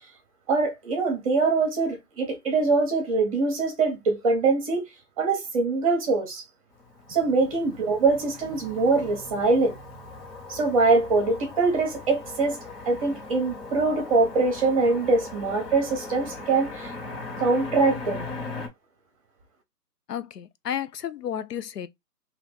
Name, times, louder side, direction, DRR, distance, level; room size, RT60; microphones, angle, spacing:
voice 1, 0.5-4.8 5.2-6.4 7.1-9.7 10.5-12.6 12.9-16.9 17.4-18.3, right 3 dB, 20° right, 0.8 m, -23 dB
Motor vehicle (road), 6.8-18.7, left 3 dB, 50° left, 1.3 m, -39 dB
voice 2, 20.1-21.9, left 9 dB, 80° left, 0.5 m, -32 dB
2.9 x 2.5 x 3.4 m
figure-of-eight pair, 145°, 48 cm